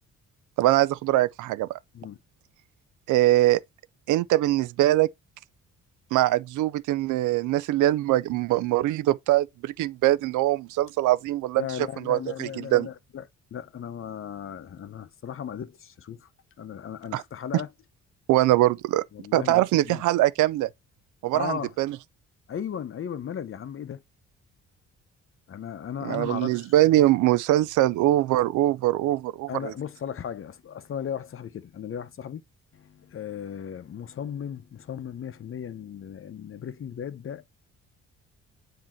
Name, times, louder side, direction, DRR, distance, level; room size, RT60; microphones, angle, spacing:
voice 1, 0.6-1.8 3.1-3.6 4.1-5.1 6.1-11.6 12.0-12.9 17.1-17.2 18.3-19.0 19.3-20.7 21.2-22.0 26.0-29.7, right 15 dB, 80° right, 0.5 m, -22 dB
voice 2, 11.5-13.2 13.5-16.3 16.6-17.7 19.1-20.0 21.3-21.7 22.5-24.0 25.5-26.7 29.5-32.4 32.7-37.4, left 8 dB, 45° left, 0.7 m, -36 dB
7.5 x 2.9 x 4.3 m
cardioid pair, 90°, 30 cm